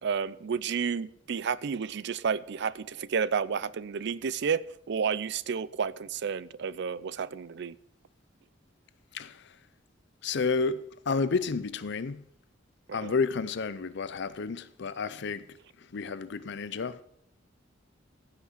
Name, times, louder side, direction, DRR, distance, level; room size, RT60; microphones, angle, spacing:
voice 1, 0.0-7.8 13.0-13.1, right 6 dB, 60° right, 0.5 m, -31 dB
voice 2, 9.1-9.6 10.2-12.2 12.9-15.4 15.8-17.0, left 4 dB, 65° left, 0.5 m, -31 dB
15.5 x 5.9 x 6.5 m
head